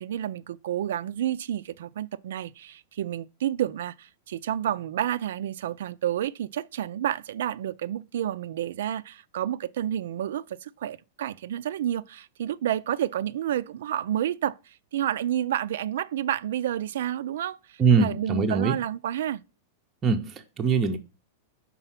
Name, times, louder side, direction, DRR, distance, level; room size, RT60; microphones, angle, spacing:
voice 1, 0.0-19.4, right 11 dB, 75° right, 0.3 m, -30 dB
voice 2, 17.8-18.8 20.0-21.0, right 5 dB, 15° right, 0.5 m, -22 dB
5.5 x 4.0 x 5.7 m
supercardioid pair, 170°, 0 cm